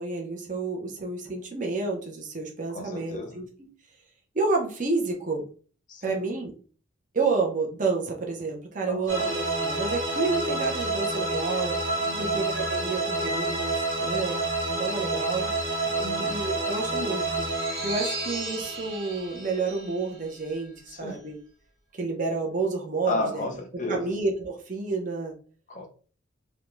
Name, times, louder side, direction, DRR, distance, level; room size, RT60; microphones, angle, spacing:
voice 1, 0.0-3.5 4.3-5.5 6.0-6.5 7.1-11.7 12.2-15.5 16.3-17.5 17.8-21.4 21.9-23.6 23.9-25.3, right 3 dB, 40° right, 1 dB, 0.6 m, -30 dB
voice 2, 2.7-3.4 5.9-6.1 8.9-9.3 12.0-12.5 16.0-16.4 20.9-21.2 23.1-24.1 25.7-25.9, left 2 dB, 35° left, 3 dB, 0.6 m, -33 dB
sound 1, 9.1-20.5, right 2 dB, 70° right, 1.0 m, -29 dB
2.5 x 2.2 x 3.0 m, 0.41 s
head